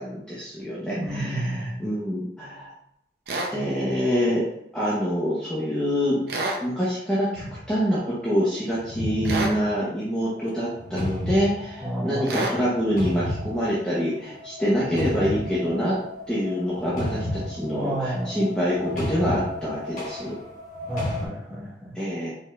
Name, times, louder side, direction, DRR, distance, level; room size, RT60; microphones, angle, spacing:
voice 1, 0.0-2.7 3.5-4.4 4.7-6.2 6.6-15.9 16.3-20.3 21.9-22.3, equal, 5° left, -9 dB, 0.9 m, -26 dB
voice 2, 0.9-1.8 11.8-12.5 17.8-18.4 20.9-22.0, right 1 dB, 10° right, -8 dB, 1.3 m, -31 dB
sound 1, 3.3-3.5 6.3-6.6 9.2-9.6 12.3-12.6, right 2 dB, 60° right, 0.6 m, -27 dB
sound 2, 7.3-7.8 8.7-21.3, left 1 dB, 45° left, 1.2 m, -33 dB
4.5 x 4.2 x 2.4 m, 0.78 s
head